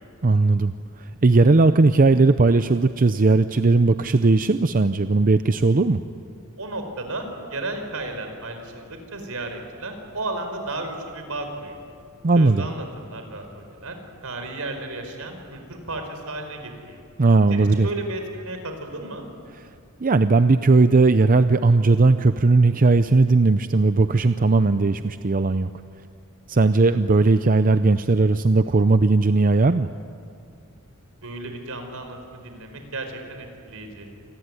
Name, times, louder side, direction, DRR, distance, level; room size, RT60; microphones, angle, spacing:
voice 1, 0.2-6.0 12.2-12.7 17.2-17.9 20.0-25.7 26.5-29.9, right 3 dB, 40° right, 10 dB, 0.6 m, -18 dB
voice 2, 6.6-11.8 12.3-13.9 14.2-17.0 17.5-19.3 31.2-34.1, right 2 dB, 75° right, 5 dB, 4.8 m, -34 dB
28.0 x 20.0 x 9.7 m, 2.4 s
head